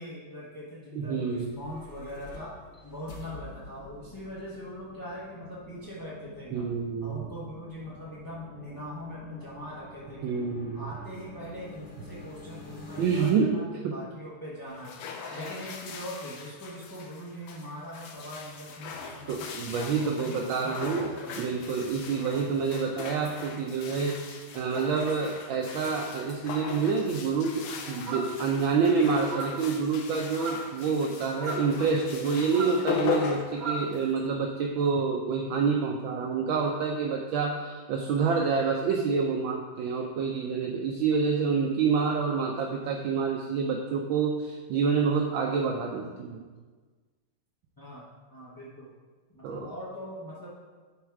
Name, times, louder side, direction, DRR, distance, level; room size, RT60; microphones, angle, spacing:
voice 1, 0.0-2.5 2.8-6.6 7.0-10.4 10.7-15.0 15.3-19.5 19.9-21.5 22.1-22.5 47.8-48.9 49.3-50.5, equal, 20° left, -8 dB, 0.6 m, -41 dB
voice 2, 0.9-1.5 6.5-7.3 10.2-10.9 13.0-13.5 13.8-14.0 15.2-15.5 19.3-46.4 49.4-49.7, right 5 dB, 70° right, 1 dB, 1.3 m, -28 dB
sound 1, 1.3-13.3, left 3 dB, 45° left, 1.4 m, -47 dB
sound 2, 14.7-34.3, left 7 dB, 85° left, 1.7 m, -39 dB
sound 3, 28.1-28.5 29.2-29.7 30.3-30.7 31.3-31.7 32.4-33.9, right 2 dB, 45° right, 0.5 m, -36 dB
10.5 x 4.0 x 4.7 m, 1.4 s
omnidirectional pair, 2.4 m